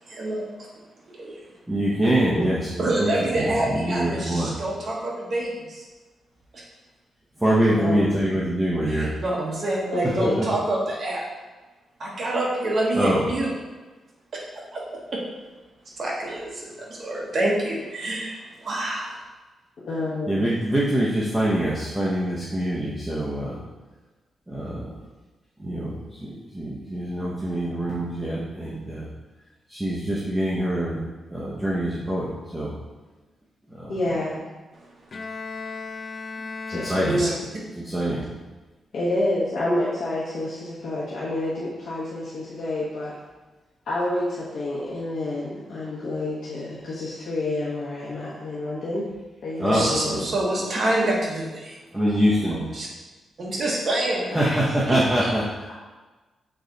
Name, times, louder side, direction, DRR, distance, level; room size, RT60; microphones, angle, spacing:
voice 1, 0.1-0.7 1.2-1.5 2.8-5.8 6.5-6.6 8.9-11.3 12.0-13.5 14.3-14.8 15.1-15.2 15.9-19.2 37.0-37.3 49.7-51.8 52.5-52.9 53.4-54.4 54.9-55.3, right 1 dB, 40° right, -3 dB, 1.2 m, -27 dB
voice 2, 1.7-4.5 7.4-9.2 9.6-9.7 10.2-10.5 12.9-13.2 20.3-23.6 24.5-25.0 25.6-29.1 29.7-31.0 31.3-32.7 33.7-34.2 36.7-37.2 37.7-38.2 49.6-50.2 51.9-52.6 54.3-55.7, right 1 dB, 5° right, -7 dB, 0.8 m, -25 dB
voice 3, 9.9-10.4 19.8-20.3 33.9-34.4 36.7-37.3 38.9-43.1 43.9-49.1 49.4-50.1 54.3-54.6, left 1 dB, 60° left, -8 dB, 1.2 m, -28 dB
Bowed string instrument, 35.1-37.8, left 4 dB, 35° left, 0.4 m, -36 dB
6.8 x 4.0 x 3.9 m, 1.2 s
wide cardioid pair, 160°, 0 cm